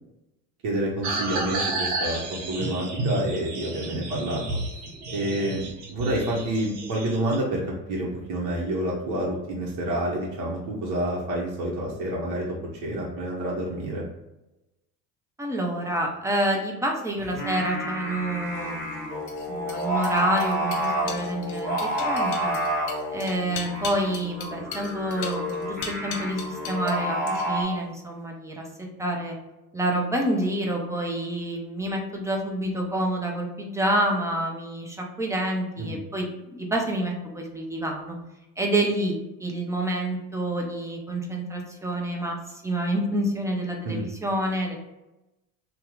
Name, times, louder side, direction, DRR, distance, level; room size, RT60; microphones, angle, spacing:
voice 1, 0.6-2.2 2.5-4.4 5.1-5.6 5.9-7.6 7.9-12.5 12.8-14.0 35.9-36.0 43.8-44.0, right 1 dB, 45° right, -4 dB, 0.9 m, -28 dB
sound 1, 1.0-7.4, right 2 dB, 75° right, 0.9 m, -31 dB
voice 2, 15.4-22.6 23.1-29.4 29.7-38.2 38.6-44.8, right 1 dB, 5° right, 0 dB, 0.5 m, -28 dB
Singing, 17.2-27.6, equal, 20° left, 1.0 m, -29 dB
sound 2, 18.5-27.0 27.3-27.7, left 6 dB, 40° left, 0.5 m, -39 dB
2.8 x 2.3 x 3.7 m, 0.96 s
hypercardioid pair, 70°, 49 cm